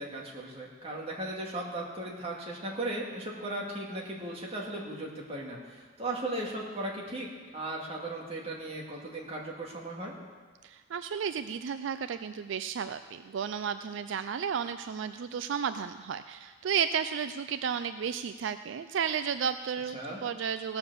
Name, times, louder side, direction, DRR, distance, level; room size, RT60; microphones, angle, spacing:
voice 1, 0.0-10.1 19.9-20.2, right 1 dB, 30° right, -2 dB, 2.2 m, -37 dB
voice 2, 10.6-20.8, right 7 dB, 70° right, 11 dB, 0.4 m, -33 dB
17.0 x 7.0 x 6.9 m, 1.5 s
head